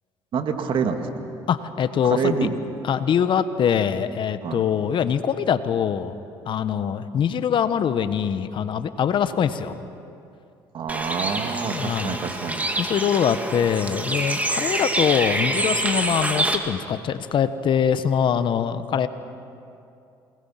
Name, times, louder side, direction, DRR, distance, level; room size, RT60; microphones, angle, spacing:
voice 1, 0.3-1.1 2.0-2.6 4.4-4.6 10.7-12.7, right 6 dB, 60° right, 6 dB, 2.2 m, -27 dB
voice 2, 1.5-2.5 2.8-6.1 6.5-9.8 11.7-12.2 12.8-19.1, left 8 dB, 55° left, 12 dB, 1.2 m, -23 dB
Bird, 10.9-16.6, right 1 dB, 15° right, 2.5 m, -26 dB
28.5 x 20.0 x 5.8 m, 2.6 s
supercardioid pair, 70°, 10 cm